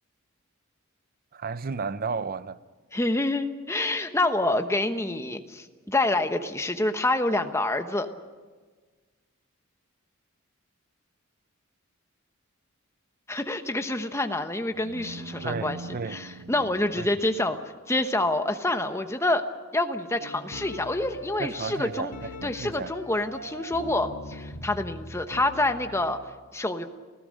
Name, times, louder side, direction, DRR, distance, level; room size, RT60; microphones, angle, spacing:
voice 1, 1.3-2.6 15.4-16.2 17.0-17.1 21.4-22.9, right 4 dB, 40° right, 0.6 m, -33 dB
voice 2, 2.9-8.1 13.3-17.6 17.9-19.4 19.7-22.1 22.4-26.2 26.5-26.9, left 2 dB, 10° left, 1.1 m, -27 dB
sound 1, 14.7-17.7, right 2 dB, 70° right, 0.9 m, -42 dB
sound 2, 20.2-26.3, left 1 dB, 90° left, 1.9 m, -41 dB
29.0 x 16.0 x 6.5 m
head